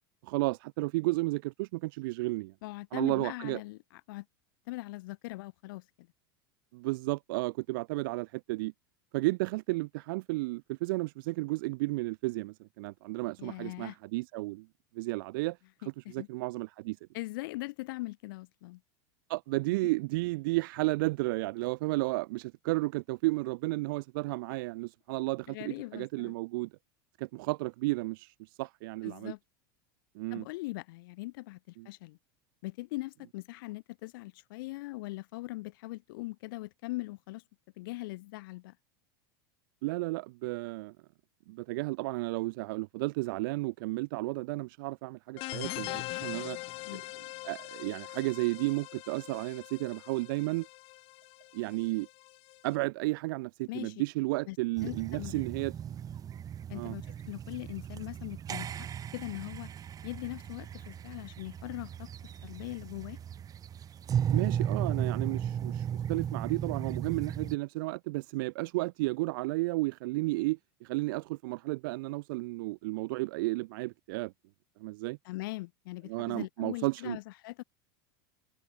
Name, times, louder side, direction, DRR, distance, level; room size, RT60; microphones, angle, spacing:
voice 1, 0.2-2.5 2.9-3.6 6.7-8.7 9.1-14.7 14.9-15.6 16.1-17.0 19.3-26.7 27.2-29.3 30.1-30.5 31.8-31.9 39.8-40.9 41.5-46.6 47.4-50.7 51.5-52.1 52.6-55.7 56.7-57.0 64.3-74.3 74.8-75.2 76.1-77.2, right 22 dB, 70° right, 1.0 m, -33 dB
voice 2, 2.6-4.3 4.7-5.8 13.4-14.0 15.8-16.3 17.1-18.8 25.5-26.3 29.0-29.4 30.3-32.2 32.6-37.4 37.8-38.8 46.8-47.0 53.7-54.0 54.5-54.6 54.8-55.4 56.7-58.9 59.1-59.7 60.0-62.1 62.4-63.2 75.3-77.6, left 21 dB, 70° left, 1.8 m, -41 dB
sound 1, 45.4-52.7, left 22 dB, 55° left, 2.4 m, -42 dB
sound 2, 54.8-67.6, right 9 dB, 30° right, 2.3 m, -36 dB
hypercardioid pair, 105°, 12 cm